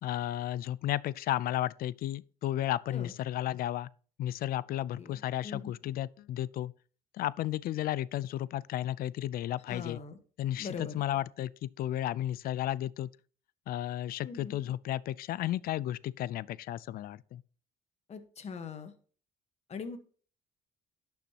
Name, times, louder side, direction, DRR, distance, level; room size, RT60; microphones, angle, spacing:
voice 1, 0.0-3.9 4.2-6.7 7.1-10.0 10.4-13.1 13.7-17.4, left 13 dB, 60° left, 0.4 m, -33 dB
voice 2, 5.0-5.7 9.7-10.2 10.6-11.0 14.2-14.6 18.1-18.9 19.7-20.0, left 5 dB, 40° left, 1.3 m, -41 dB
11.5 x 6.9 x 2.9 m
cardioid pair, 110°, 17 cm